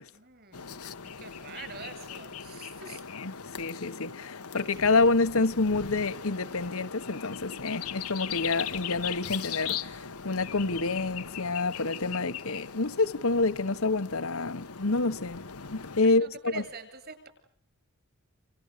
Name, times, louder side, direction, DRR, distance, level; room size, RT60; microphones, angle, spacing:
voice 1, 0.1-3.0 16.0-17.3, right 4 dB, 45° right, 7.9 m, -45 dB
sound 1, 0.5-16.0, left 7 dB, 90° left, 1.4 m, -39 dB
voice 2, 3.1-15.4 15.7-16.6, left 3 dB, 70° left, 1.3 m, -28 dB
29.0 x 29.0 x 6.8 m
head